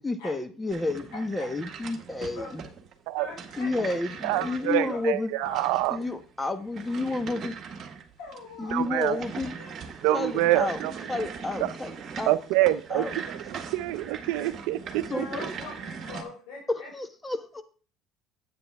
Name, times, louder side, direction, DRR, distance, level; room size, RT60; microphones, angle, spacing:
voice 1, 0.0-2.6 3.6-5.3 5.9-7.6 8.6-9.5 10.1-10.8 11.1-13.1 15.1-15.5 16.7-17.6, left 2 dB, 15° left, 10 dB, 1.1 m, -31 dB
sound 1, 0.7-16.2, right 6 dB, 45° right, 1.8 m, -41 dB
voice 2, 1.1-1.5 2.2-2.7 3.1-3.9 4.3-5.0 5.4-5.7 8.2-8.9 9.2-10.3 15.1-16.9, left 3 dB, 85° left, -3 dB, 5.7 m, -42 dB
voice 3, 4.2-6.0 8.7-9.2 10.0-10.9 11.6-11.7 12.3-15.2, right 16 dB, 80° right, 11 dB, 0.6 m, -26 dB
9.2 x 8.8 x 3.5 m, 0.40 s
supercardioid pair, 100°, 0 cm